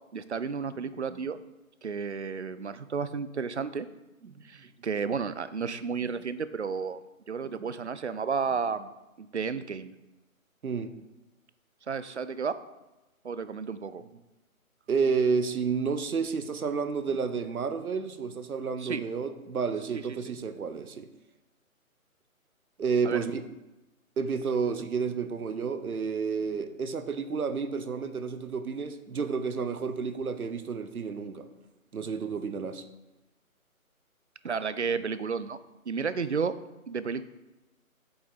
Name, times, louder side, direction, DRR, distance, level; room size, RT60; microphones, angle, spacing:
voice 1, 0.1-1.4 1.8-3.9 4.4-7.0 7.3-8.9 9.2-9.9 11.9-12.6 13.2-14.0 18.8-19.0 19.9-20.0 23.1-23.2 34.4-35.6 35.9-36.6 36.9-37.2, right 5 dB, 55° right, 14 dB, 0.5 m, -32 dB
voice 2, 14.9-21.1 22.8-23.4 24.2-31.5 31.9-32.8, right 5 dB, 85° right, 11 dB, 1.0 m, -30 dB
8.6 x 7.0 x 4.0 m, 1.0 s
hypercardioid pair, 180°, 43 cm